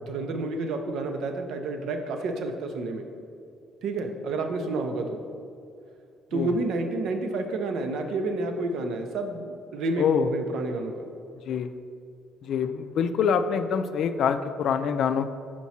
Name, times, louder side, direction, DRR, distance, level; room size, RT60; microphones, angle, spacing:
voice 1, 0.0-3.0 3.8-5.2 6.3-11.1, right 2 dB, 75° right, 5 dB, 0.6 m, -30 dB
voice 2, 10.0-10.3 11.5-11.7 12.4-15.3, left 7 dB, 65° left, 10 dB, 0.3 m, -25 dB
5.9 x 4.5 x 4.2 m, 2.4 s
cardioid pair, 115°, 0 cm